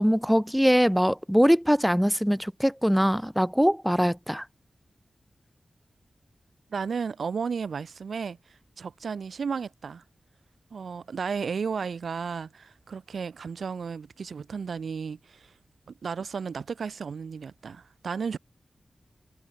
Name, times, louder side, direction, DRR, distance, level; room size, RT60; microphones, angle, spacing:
voice 1, 0.0-4.4, equal, ahead, 1.0 m, -22 dB
voice 2, 6.7-8.4 8.8-10.0 10.7-15.5 15.9-18.4, right 5 dB, 85° right, 4.5 m, -33 dB
wide cardioid pair, 140°, 0 cm